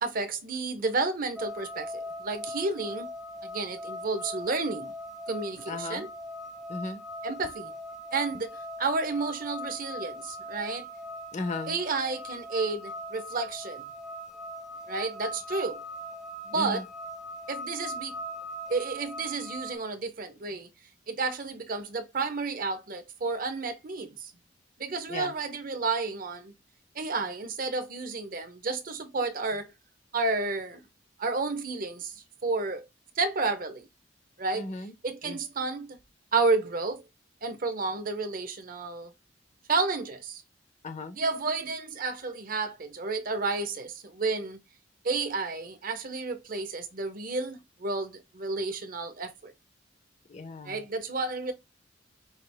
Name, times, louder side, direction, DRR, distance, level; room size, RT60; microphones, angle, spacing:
voice 1, 0.0-1.9 2.2-3.1 3.4-4.9 5.3-6.1 7.2-7.7 8.1-10.9 11.7-13.8 14.9-15.8 16.5-16.8 17.5-18.1 18.7-20.7 21.1-24.3 24.8-26.5 26.9-29.7 30.1-30.8 31.2-32.1 32.4-32.8 33.2-33.9 34.4-34.7 35.0-36.0 36.3-37.0 37.4-39.1 39.7-40.4 41.2-44.6 45.0-49.5 50.6-51.5, right 3 dB, 50° right, 0.9 m, -31 dB
sound 1, 1.4-19.7, equal, ahead, 0.6 m, -40 dB
voice 2, 5.7-6.1 6.7-7.0 11.3-11.8 16.5-16.8 25.1-25.3 34.5-34.9 35.2-35.4 40.8-41.2 50.3-50.8, left 2 dB, 40° left, 0.7 m, -36 dB
5.8 x 2.5 x 3.4 m
head